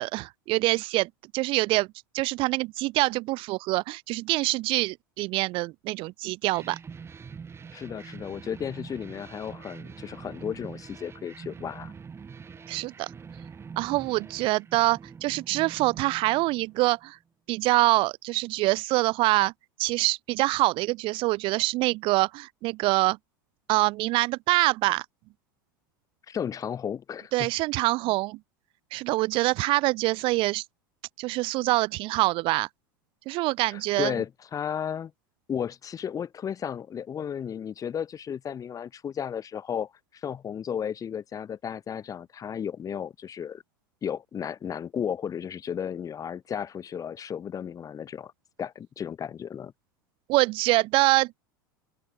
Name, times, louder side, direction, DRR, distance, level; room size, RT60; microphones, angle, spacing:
voice 1, 0.0-1.9 2.1-6.8 12.7-13.1 13.8-17.2 17.5-19.5 19.8-23.2 23.7-25.0 27.3-28.4 28.9-30.6 31.2-32.7 33.3-34.1 50.3-51.4, right 21 dB, 50° right, 1.3 m, -25 dB
sound 1, 6.5-17.1, right 6 dB, 20° right, 2.8 m, -44 dB
voice 2, 7.7-11.9 26.3-27.5 33.7-35.1 35.5-43.6 44.0-48.3 48.6-49.7, left 8 dB, 30° left, 5.1 m, -34 dB
open air
hypercardioid pair, 85°, 11 cm